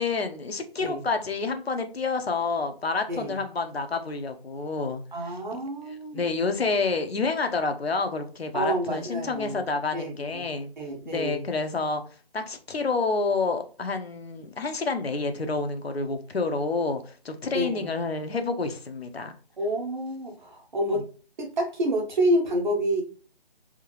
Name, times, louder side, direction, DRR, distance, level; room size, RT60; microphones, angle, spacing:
voice 1, 0.0-5.6 6.1-10.7 11.0-12.0 12.3-19.3 20.9-21.0, left 4 dB, 80° left, 0.9 m, -29 dB
voice 2, 3.1-3.4 5.1-6.3 8.5-9.6 9.9-10.4 10.8-11.4 17.5-17.9 19.6-21.1 21.4-23.0, right 1 dB, 50° right, 1.3 m, -28 dB
3.6 x 2.8 x 3.0 m
figure-of-eight pair, 160°, 31 cm